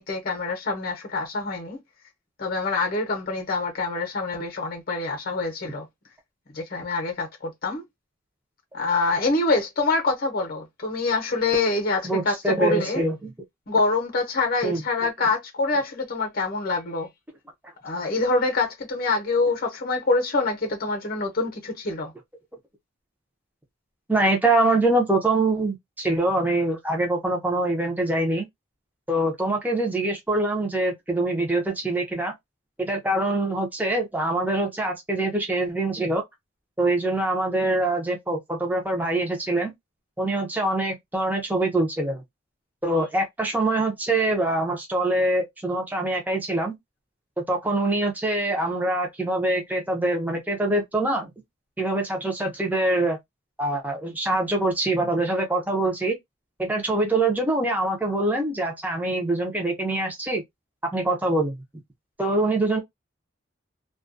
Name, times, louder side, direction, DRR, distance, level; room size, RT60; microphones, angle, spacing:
voice 1, 0.0-1.8 2.4-5.9 6.5-7.8 8.7-13.0 13.7-17.1 17.8-22.1, left 3 dB, 45° left, 0.7 m, -25 dB
voice 2, 12.0-13.3 14.6-14.8 24.1-28.5 29.1-32.3 32.8-36.2 36.8-39.7 40.2-42.2 42.8-46.7 47.4-51.3 51.8-53.2 53.6-56.2 56.6-60.4 60.8-61.6 62.2-62.8, right 2 dB, 10° right, 0.6 m, -24 dB
2.3 x 2.2 x 2.5 m
head